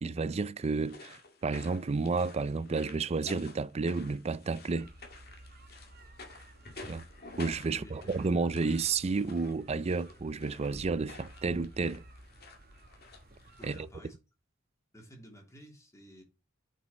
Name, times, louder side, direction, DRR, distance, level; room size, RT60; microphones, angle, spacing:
voice 1, 0.0-4.9 6.9-7.1 7.4-12.0 13.6-13.8, right 4 dB, 30° right, 0.4 m, -31 dB
Alanis - Walking in the Castle - Andando por el Castillo, 0.6-13.9, left 3 dB, 50° left, 2.0 m, -51 dB
sound 1, 4.7-13.8, right 1 dB, 50° right, 1.1 m, -53 dB
voice 2, 7.7-8.1 13.6-14.2 14.9-16.2, equal, 15° left, 2.9 m, -52 dB
8.1 x 5.4 x 4.2 m
head